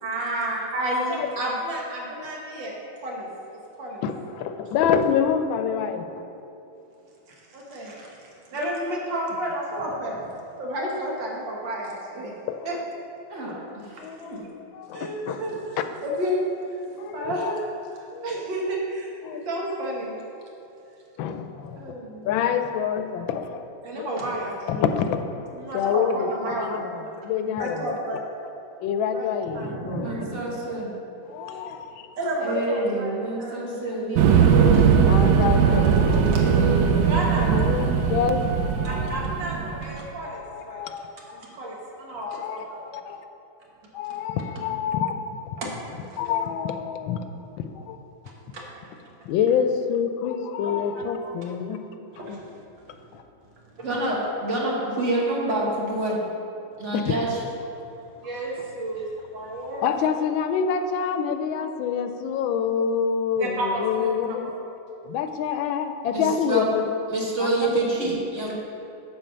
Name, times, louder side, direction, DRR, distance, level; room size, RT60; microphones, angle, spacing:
voice 1, 0.0-2.7 3.0-3.3 3.8-4.0 7.5-8.1 8.5-10.2 10.6-12.8 14.9-16.4 17.1-17.6 18.2-19.1 19.5-20.1 21.8-22.2 23.8-24.8 25.5-27.1 27.4-28.2 29.1-29.3 29.5-30.4 31.5-31.6 32.2-33.9 34.7-34.8 36.3-36.4 37.1-37.5 38.8-40.8 41.6-42.9 45.6-45.7 46.1-46.2 48.5-48.7 50.6-50.8 51.2-51.3 52.1-52.4 53.8-53.9 58.2-59.9 63.4-64.1 68.5-68.6, right 1 dB, 70° right, -3 dB, 2.1 m, -31 dB
voice 2, 4.0-6.1 8.6-8.7 12.5-12.8 14.0-14.4 14.7-15.4 17.0-17.5 18.1-18.3 19.2-19.4 21.2-21.8 22.2-23.6 23.9-24.0 24.7-25.2 25.7-28.0 28.8-30.1 31.2-32.1 35.1-36.3 37.4-39.3 40.2-41.4 42.2-42.6 42.9-43.2 43.9-45.2 46.2-47.2 47.6-48.0 49.2-51.8 52.3-52.4 53.1-53.2 56.9-57.1 59.7-64.5 65.0-66.9 67.4-68.2, left 7 dB, 80° left, 8 dB, 1.3 m, -27 dB
voice 3, 30.0-30.9 32.4-34.8 36.4-37.1 37.9-38.0 53.8-56.2 56.8-57.3 66.1-66.7 67.1-68.5, right 2 dB, 40° right, -4 dB, 1.6 m, -27 dB
sound 1, 34.2-40.0, right 7 dB, 90° right, 1.4 m, -19 dB
9.1 x 4.5 x 6.7 m, 3.0 s
omnidirectional pair, 2.1 m